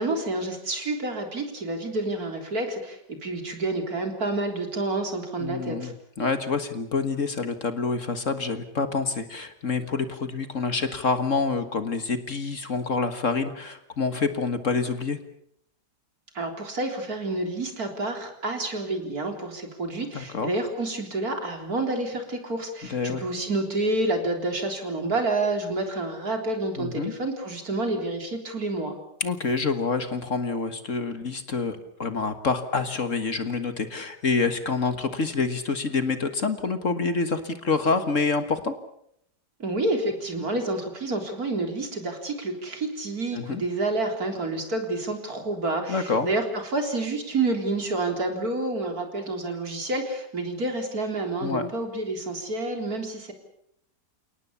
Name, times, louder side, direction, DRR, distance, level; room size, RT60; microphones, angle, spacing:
voice 1, 0.0-5.9 16.3-29.0 39.6-53.3, right 2 dB, 60° right, 5 dB, 4.2 m, -29 dB
voice 2, 5.4-15.2 20.1-20.5 22.9-23.2 26.8-27.1 29.2-38.8 43.3-43.6 45.9-46.3 51.4-51.7, left 4 dB, 50° left, 10 dB, 1.8 m, -27 dB
29.5 x 18.5 x 7.0 m, 0.72 s
omnidirectional pair, 1.8 m